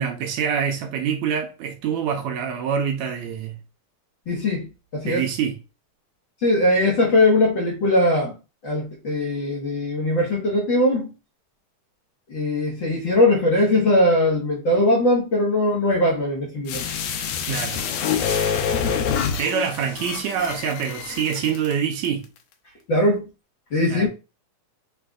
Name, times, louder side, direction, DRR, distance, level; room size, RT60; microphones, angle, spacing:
voice 1, 0.0-3.6 5.0-5.6 17.5-17.9 19.4-22.3 23.9-24.1, right 7 dB, 75° right, 1.8 m, -25 dB
voice 2, 4.3-4.7 4.9-5.2 6.4-8.3 8.6-11.1 12.3-16.8 22.9-23.3 23.7-24.1, left 1 dB, 50° left, 1.6 m, -20 dB
sound 1, 16.7-21.7 22.0-22.1, left 7 dB, 75° left, 2.0 m, -26 dB
6.2 x 3.4 x 2.4 m
omnidirectional pair, 3.5 m